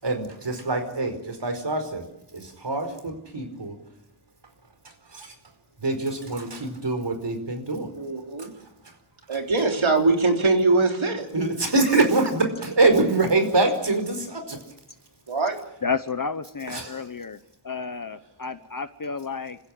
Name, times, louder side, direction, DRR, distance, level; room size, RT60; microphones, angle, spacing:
voice 1, 0.0-2.0 2.3-3.8 5.1-5.3 5.8-7.9 11.3-14.6 16.7-17.0, right 2 dB, 55° right, 7 dB, 4.9 m, -24 dB
voice 2, 8.0-8.5 9.3-11.3 15.3-15.6, right 3 dB, 70° right, 3 dB, 3.8 m, -22 dB
voice 3, 15.8-17.4 17.6-19.6, left 5 dB, 40° left, 12 dB, 1.0 m, -31 dB
28.5 x 15.5 x 8.9 m, 0.86 s
wide cardioid pair, 85°, 49 cm